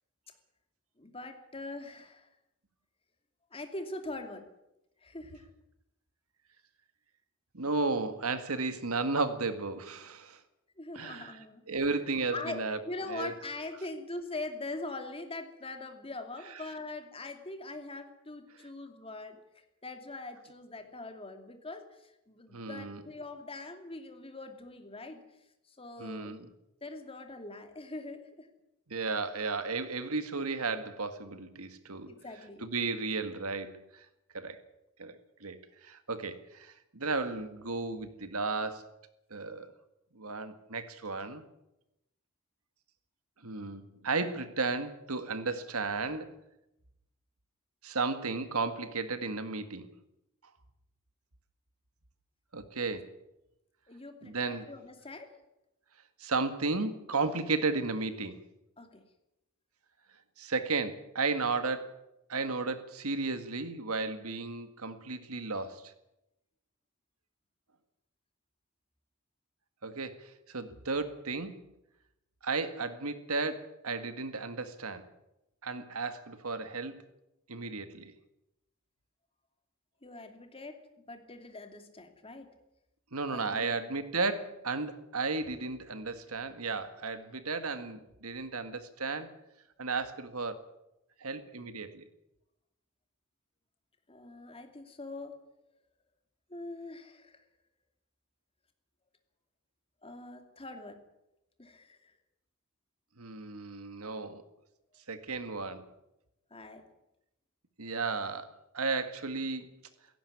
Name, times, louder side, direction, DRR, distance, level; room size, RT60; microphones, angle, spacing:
voice 1, 1.0-2.3 3.5-4.5 5.0-5.5 10.8-12.0 12.3-25.2 25.7-26.4 26.8-28.5 32.1-32.6 53.9-55.4 58.8-59.1 80.0-82.5 83.3-83.8 94.1-95.4 96.5-97.4 100.0-101.0 101.6-102.1 106.5-106.8, left 2 dB, 25° left, 2.6 m, -43 dB
voice 2, 7.5-10.4 10.9-11.4 11.7-12.8 13.1-13.3 22.5-23.0 26.0-26.5 28.9-32.1 32.6-34.1 34.3-34.6 35.0-38.9 39.3-39.7 40.2-41.4 43.4-46.4 47.8-49.9 52.5-53.1 54.2-54.7 56.2-58.4 60.4-62.0 62.3-65.9 69.8-71.6 72.4-75.1 75.6-77.0 77.5-78.1 83.1-89.3 89.8-90.7 91.2-92.0 103.2-104.4 105.1-105.9 107.8-109.8, right 3 dB, 75° right, 1.9 m, -34 dB
17.0 x 16.5 x 9.7 m
head